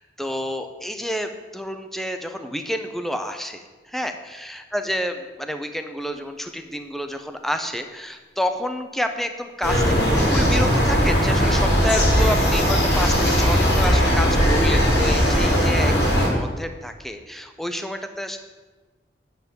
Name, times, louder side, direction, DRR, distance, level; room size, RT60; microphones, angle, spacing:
voice 1, 0.2-18.4, equal, ahead, 7 dB, 0.6 m, -29 dB
sound 1, 9.6-16.3, equal, 80° left, 3.2 m, -18 dB
Hiss, 12.2-13.8, left 3 dB, 30° left, 1.8 m, -38 dB
8.7 x 5.7 x 7.7 m, 1.3 s
head